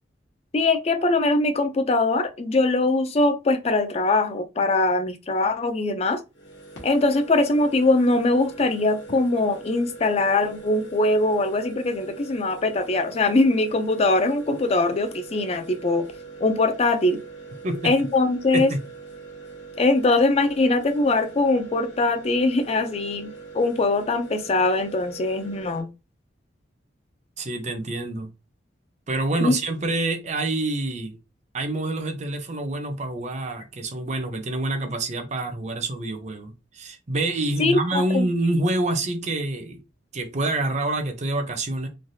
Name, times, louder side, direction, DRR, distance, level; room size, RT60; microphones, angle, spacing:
voice 1, 0.5-6.2 6.8-16.0 16.4-17.2 17.8-18.7 19.8-25.9 29.4-29.5 37.6-38.3, left 2 dB, 35° left, 0.4 m, -22 dB
sound 1, 6.3-25.8, right 4 dB, 75° left, 1.1 m, -42 dB
voice 2, 17.6-18.1 18.5-18.8 27.4-28.3 29.1-31.2 31.5-39.8 40.1-41.9, right 2 dB, 40° right, 0.6 m, -27 dB
3.2 x 2.3 x 2.6 m
head